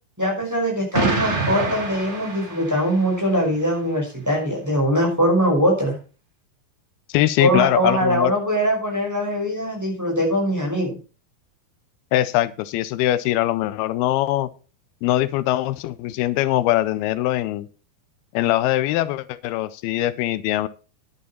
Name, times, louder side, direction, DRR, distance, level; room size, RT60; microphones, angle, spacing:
voice 1, 0.2-6.0 7.4-11.0, equal, 5° right, -1 dB, 5.5 m, -22 dB
Explosion, 0.9-3.1, right 3 dB, 50° right, 0.8 m, -25 dB
voice 2, 7.1-8.3 12.1-14.5 15.0-17.7 18.3-20.7, left 15 dB, 90° left, 15 dB, 2.6 m, -22 dB
11.0 x 9.7 x 4.3 m, 0.36 s
omnidirectional pair, 4.4 m